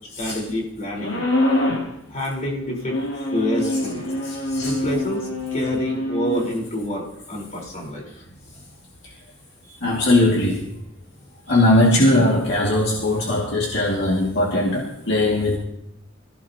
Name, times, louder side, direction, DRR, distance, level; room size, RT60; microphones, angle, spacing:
voice 1, 0.2-1.2 2.1-3.0 3.3-4.1 4.6-8.1 11.5-11.6, equal, 40° left, -2 dB, 4.2 m, -28 dB
sound 1, 1.0-1.9 2.8-6.5, left 1 dB, 90° left, 3.2 m, -24 dB
voice 2, 4.2-4.7 9.8-10.7 11.5-15.6, left 1 dB, 60° left, -4 dB, 2.2 m, -19 dB
26.5 x 15.5 x 2.9 m, 0.79 s
head